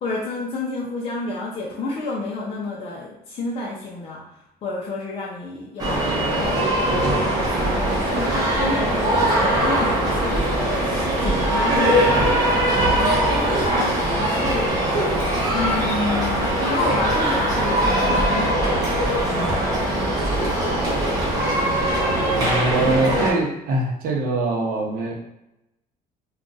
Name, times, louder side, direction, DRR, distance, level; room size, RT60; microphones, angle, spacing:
voice 1, 0.0-4.2 4.6-14.8 15.5-19.7, left 3 dB, 40° left, -4 dB, 0.5 m, -30 dB
sound 1, 5.8-23.3, right 1 dB, 25° right, 0.8 m, -21 dB
voice 2, 22.3-25.1, right 2 dB, 60° right, -1 dB, 0.7 m, -23 dB
2.5 x 2.3 x 3.8 m, 0.88 s
cardioid pair, 155°, 16 cm